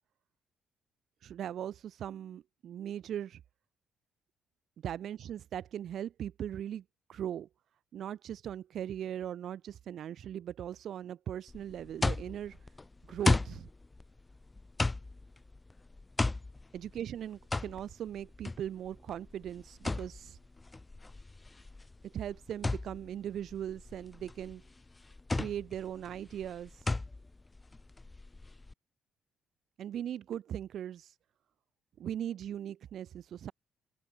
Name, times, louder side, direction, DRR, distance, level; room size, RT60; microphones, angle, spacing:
voice 1, 1.2-3.4 4.8-6.8 7.1-7.5 7.9-12.6 13.1-13.7 16.7-20.4 22.0-24.6 25.4-26.7 29.8-31.1 32.0-33.5, right 10 dB, 70° right, 3.6 m, -39 dB
sound 1, 11.5-28.7, left 2 dB, 20° left, 0.6 m, -35 dB
open air
cardioid pair, 90°, 0 cm